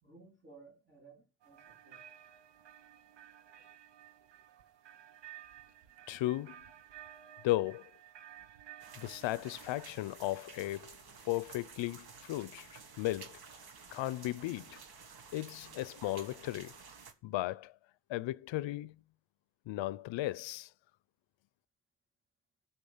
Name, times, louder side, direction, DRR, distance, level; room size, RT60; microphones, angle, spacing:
voice 1, 0.0-2.0, right 3 dB, 25° right, 3.3 m, -58 dB
sound 1, 1.4-9.9, right 11 dB, 75° right, 1.0 m, -55 dB
voice 2, 6.1-6.6 7.4-7.9 9.0-11.0 11.2-13.4 13.9-14.8 15.3-16.7 17.2-17.7 18.1-19.0 19.7-20.7, left 16 dB, 85° left, 0.5 m, -35 dB
sound 2, 8.8-17.1, right 5 dB, 55° right, 1.5 m, -53 dB
12.0 x 6.0 x 7.1 m
wide cardioid pair, 150°, 44 cm